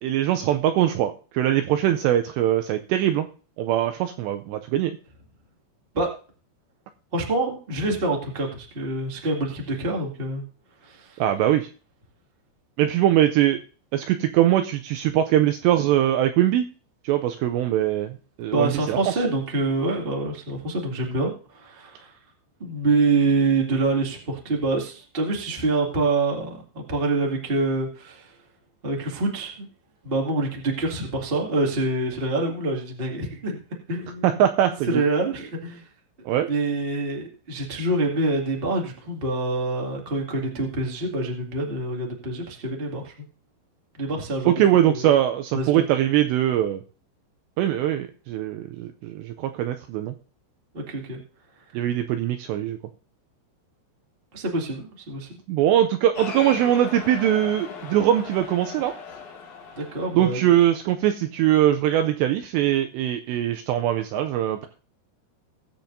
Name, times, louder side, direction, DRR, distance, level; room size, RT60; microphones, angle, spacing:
voice 1, 0.0-3.3 3.6-5.0 11.2-11.7 12.8-13.6 13.9-16.7 17.0-19.0 34.2-35.0 36.3-36.5 44.5-46.8 47.6-50.1 51.7-52.8 55.5-58.9 60.1-64.7, right 12 dB, 85° right, 7 dB, 2.5 m, -22 dB
voice 2, 7.1-10.4 10.8-11.2 18.5-22.1 22.6-28.3 28.8-29.7 30.0-33.6 33.9-34.4 34.9-35.8 36.5-43.1 44.0-44.5 44.9-45.1 45.5-45.8 50.7-51.2 54.3-55.3 59.7-60.4, right 2 dB, 45° right, 0 dB, 0.7 m, -26 dB
Cheering, 56.1-60.9, left 5 dB, 60° left, 2.1 m, -38 dB
20.5 x 7.5 x 2.7 m, 0.37 s
omnidirectional pair, 5.5 m